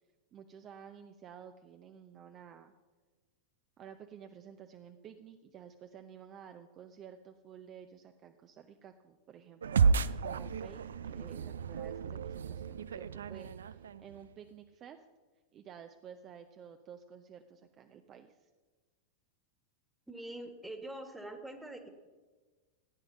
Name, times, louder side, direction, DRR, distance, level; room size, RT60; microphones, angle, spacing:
voice 1, 0.3-2.7 3.8-15.0 15.5-18.5, right 8 dB, 30° right, 6 dB, 0.6 m, -52 dB
sound 1, 9.6-14.3, right 5 dB, 65° right, 0.4 m, -32 dB
voice 2, 20.1-21.9, right 1 dB, 5° right, 6 dB, 1.6 m, -44 dB
14.5 x 9.3 x 5.6 m, 1.3 s
figure-of-eight pair, 90°, 0 cm